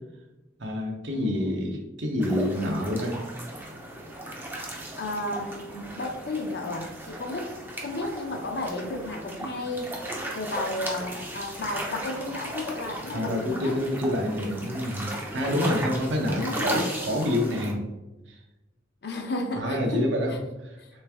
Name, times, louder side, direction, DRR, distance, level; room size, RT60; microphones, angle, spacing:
voice 1, 0.6-3.2 13.1-17.8 18.3-18.4 19.6-20.8, left 1 dB, 75° right, 2 dB, 0.8 m, -27 dB
voice 2, 1.1-1.7 5.0-9.9 10.3-13.8 16.4-16.7 19.0-20.4 20.8-20.9, left 2 dB, 60° left, 3 dB, 0.6 m, -33 dB
sound 1, 2.2-17.7, right 1 dB, 10° right, 0.5 m, -36 dB
3.3 x 3.2 x 3.4 m, 1.0 s
head